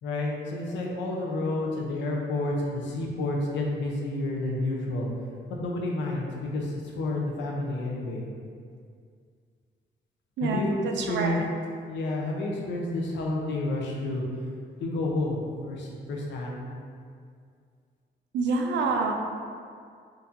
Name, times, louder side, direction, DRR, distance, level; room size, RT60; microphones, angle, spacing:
voice 1, 0.0-5.1 5.5-8.2 10.4-10.8 11.1-11.4 11.9-14.2 14.8-16.7, left 2 dB, 85° left, -2 dB, 0.7 m, -30 dB
voice 2, 10.4-11.5 18.3-19.1, right 3 dB, 80° right, 2 dB, 0.5 m, -27 dB
4.5 x 2.7 x 2.6 m, 2.2 s
cardioid pair, 110°, 18 cm